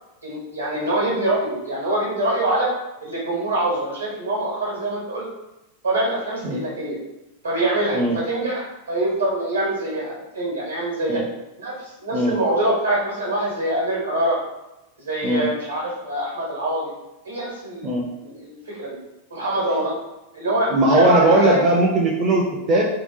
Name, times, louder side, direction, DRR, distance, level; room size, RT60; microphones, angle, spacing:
voice 1, 0.2-2.7 3.0-5.3 5.8-7.0 7.4-11.2 11.6-14.4 15.0-16.9 17.2-17.9 18.2-19.0 19.3-20.0 20.3-21.6, right 1 dB, 75° right, -4 dB, 1.0 m, -24 dB
voice 2, 20.7-22.9, right 2 dB, 30° right, -2 dB, 0.4 m, -19 dB
2.7 x 2.0 x 2.5 m, 0.96 s
figure-of-eight pair, 90°, 0 cm